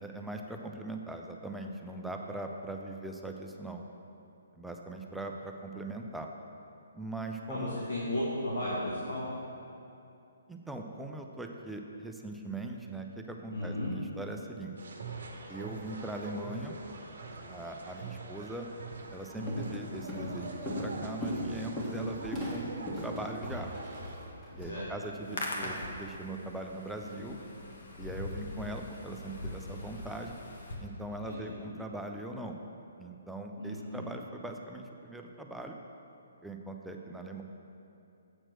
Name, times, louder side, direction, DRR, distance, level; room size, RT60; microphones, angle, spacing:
voice 1, 0.0-3.8 4.6-6.3 6.9-7.8 10.5-14.8 15.5-16.8 17.5-18.7 19.1-23.7 24.5-27.4 28.0-30.4 30.8-32.6 33.0-35.8 36.4-37.4, right 2 dB, 5° right, 2 dB, 0.4 m, -41 dB
voice 2, 7.5-9.2 13.5-13.9 19.4-19.6 24.7-24.9 31.1-31.5 33.6-34.1, left 1 dB, 75° left, -7 dB, 1.5 m, -35 dB
sound 1, 14.8-24.2, right 3 dB, 60° right, 0.9 m, -44 dB
Walk footsteps, 18.9-19.1 19.5-19.8 20.1-24.7, equal, 15° left, 1.7 m, -37 dB
Hands, 25.1-30.7, left 1 dB, 55° left, 1.2 m, -41 dB
7.6 x 4.4 x 6.3 m, 2.7 s
figure-of-eight pair, 130°, 0 cm